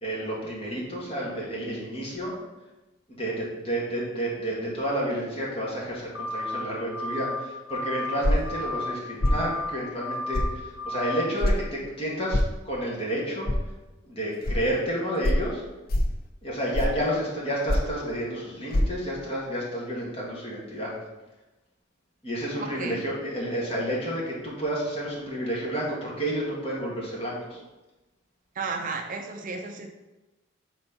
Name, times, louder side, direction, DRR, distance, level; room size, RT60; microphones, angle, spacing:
voice 1, 0.0-2.4 3.1-12.4 12.6-13.5 14.0-15.6 16.4-20.9 22.2-27.6, equal, 30° left, -5 dB, 1.7 m, -30 dB
sound 1, 6.1-6.6 6.9-7.4 7.7-8.2 8.4-8.9 9.2-9.7 10.0-10.5 10.8-11.3, left 1 dB, 85° left, 1.1 m, -32 dB
sound 2, 8.2-8.5 9.2-9.4 10.3-10.5 11.4-11.6 12.3-12.5 13.5-13.6 14.4-14.6 15.2-15.4 15.9-16.2 16.7-17.0 17.7-18.0 18.7-18.8, left 1 dB, 45° left, 0.5 m, -23 dB
voice 2, 22.6-23.0 28.6-29.9, right 4 dB, 40° right, 4 dB, 0.4 m, -33 dB
4.3 x 4.2 x 5.6 m, 1.1 s
head